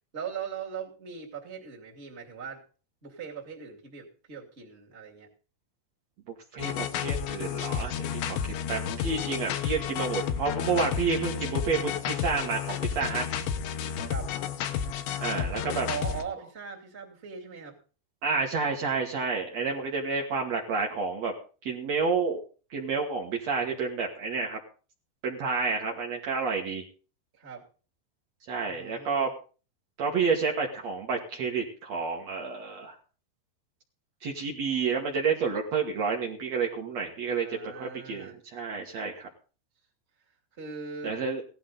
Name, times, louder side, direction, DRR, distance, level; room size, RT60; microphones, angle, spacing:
voice 1, 0.1-2.6 3.0-5.3 14.0-14.3 15.3-17.8 27.3-27.7 28.6-29.3 37.3-38.3 40.6-41.4, right 6 dB, 25° right, -1 dB, 1.6 m, -40 dB
voice 2, 6.5-13.2 15.2-15.9 18.2-21.3 21.6-22.4 22.7-24.6 25.2-26.8 28.5-29.3 30.0-33.0 34.2-37.5 37.7-39.3 41.0-41.4, right 5 dB, 90° right, -1 dB, 1.4 m, -30 dB
sound 1, 6.6-16.2, left 8 dB, 75° left, 3.2 m, -31 dB
17.0 x 12.0 x 4.0 m, 0.37 s
omnidirectional pair, 5.6 m